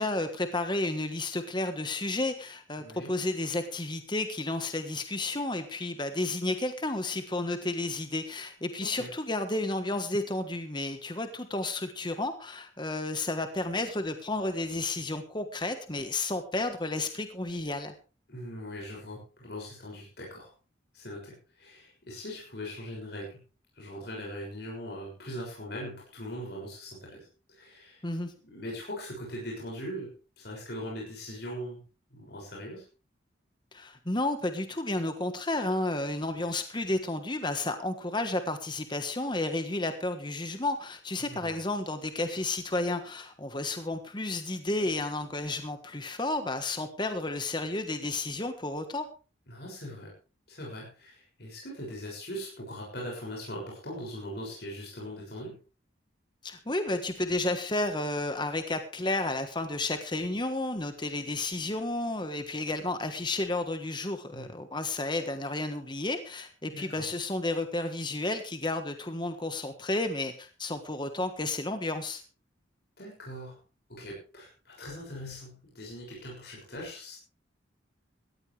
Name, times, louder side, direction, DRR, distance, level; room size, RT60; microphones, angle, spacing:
voice 1, 0.0-17.9 28.0-28.3 33.7-49.1 56.4-72.2, left 2 dB, 25° left, 8 dB, 1.4 m, -32 dB
voice 2, 2.8-3.1 8.8-9.1 18.3-20.5 20.9-23.4 23.7-28.0 28.4-31.8 32.1-32.8 41.2-41.6 49.5-50.1 50.5-55.6 64.3-64.5 66.7-67.1 73.0-73.6 73.9-77.2, equal, 60° left, -2 dB, 6.6 m, -41 dB
17.5 x 14.5 x 3.4 m, 0.34 s
head